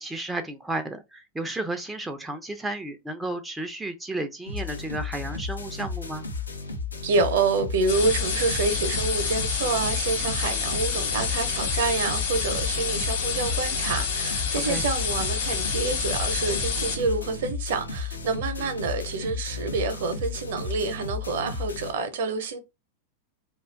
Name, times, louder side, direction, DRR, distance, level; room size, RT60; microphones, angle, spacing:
voice 1, 0.0-6.2 14.6-14.8 18.6-18.7, right 2 dB, 10° right, 0.4 m, -33 dB
sound 1, 4.5-21.9, left 4 dB, 80° left, 0.6 m, -34 dB
voice 2, 7.0-22.6, right 4 dB, 55° right, 0.6 m, -27 dB
sound 2, 7.9-17.0, left 6 dB, 55° left, 1.2 m, -28 dB
2.4 x 2.3 x 3.2 m
figure-of-eight pair, 90°, 0 cm